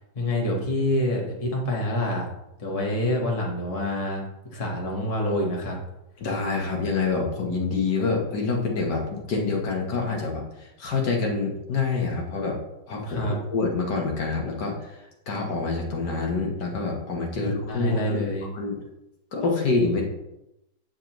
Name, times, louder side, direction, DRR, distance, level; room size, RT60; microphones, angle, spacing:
voice 1, 0.0-2.3 2.6-4.2 4.5-5.8 13.1-13.4 17.3-18.5, left 1 dB, 20° left, -2 dB, 1.2 m, -27 dB
voice 2, 6.2-10.4 10.8-12.6 12.9-14.9 15.3-18.2 18.5-18.8 19.3-20.0, left 4 dB, 65° left, 0 dB, 1.7 m, -26 dB
8.5 x 5.1 x 3.0 m, 0.89 s
omnidirectional pair, 2.0 m